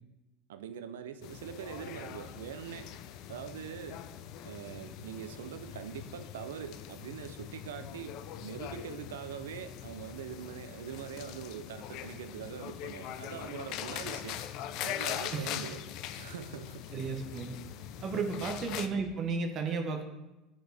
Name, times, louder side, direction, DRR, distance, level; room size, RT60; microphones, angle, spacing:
voice 1, 0.5-2.9 3.3-4.0 4.4-14.4 14.8-15.8 16.1-16.9 18.4-18.5, right 9 dB, 85° right, 11 dB, 0.4 m, -43 dB
sound 1, 1.2-18.9, left 10 dB, 65° left, 0.4 m, -42 dB
voice 2, 16.9-17.6 18.0-20.0, right 4 dB, 50° right, 4 dB, 0.9 m, -33 dB
7.9 x 4.3 x 3.3 m, 1.0 s
hypercardioid pair, 85°, 0 cm